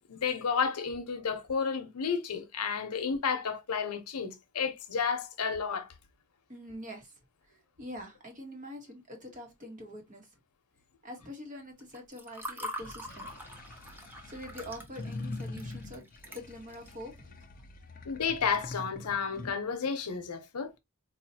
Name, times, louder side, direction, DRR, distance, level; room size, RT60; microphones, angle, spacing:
voice 1, 0.1-5.9 18.1-20.7, left 6 dB, 85° left, 0.8 m, -31 dB
voice 2, 6.5-7.1 7.5-10.3 11.0-13.3 14.2-16.0 16.3-18.0 19.4-19.5, equal, 35° right, 1.1 m, -45 dB
Water / Fill (with liquid), 11.8-16.9, equal, 10° right, 0.5 m, -44 dB
sound 1, 12.8-19.5, left 2 dB, 40° left, 0.5 m, -44 dB
4.1 x 2.4 x 2.7 m
head